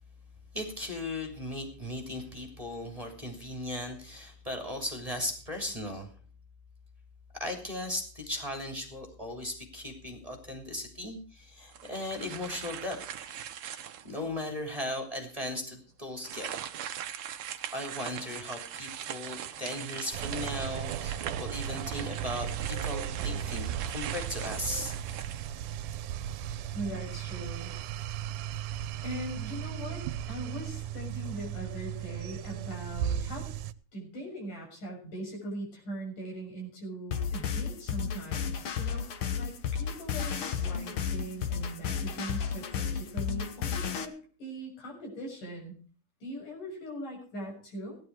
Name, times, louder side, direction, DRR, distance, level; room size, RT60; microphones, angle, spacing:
voice 1, 0.5-6.1 7.3-13.0 14.0-16.5 17.7-24.9, left 1 dB, 10° right, 1 dB, 2.9 m, -37 dB
sound 1, 11.7-14.3 14.8-14.9 16.2-26.0, right 10 dB, 65° right, 1.5 m, -41 dB
sound 2, 20.1-33.7, right 10 dB, 80° right, 2.2 m, -36 dB
voice 2, 26.7-27.7 29.0-33.5 33.9-45.8 46.2-48.0, right 1 dB, 80° left, 0 dB, 8.3 m, -40 dB
sound 3, 37.1-44.0, left 7 dB, 55° left, 1.6 m, -33 dB
17.0 x 11.5 x 4.7 m, 0.42 s
omnidirectional pair, 3.6 m